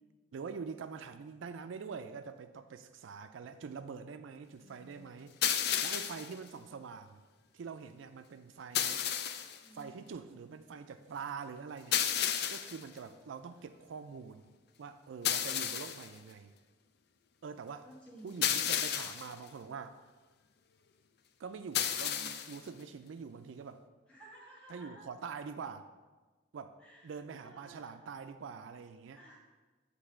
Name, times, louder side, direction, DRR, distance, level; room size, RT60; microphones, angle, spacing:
voice 1, 0.3-5.3 5.8-7.2 7.5-9.0 9.7-12.0 12.5-14.5 14.8-16.5 17.4-17.9 18.2-20.0 21.4-23.8 24.7-25.9 26.5-26.8 27.0-29.2, right 5 dB, 85° right, 9 dB, 0.4 m, -45 dB
sound 1, 5.4-6.3 8.7-9.6 11.9-12.8 15.2-16.1 18.4-19.3 21.7-22.6, left 9 dB, 55° left, 0.4 m, -32 dB
voice 2, 9.6-10.0 17.8-18.4 22.0-22.3 24.1-25.1 26.8-27.9 29.1-29.4, right 1 dB, 5° left, -8 dB, 1.6 m, -56 dB
8.0 x 3.3 x 6.2 m, 1.3 s
head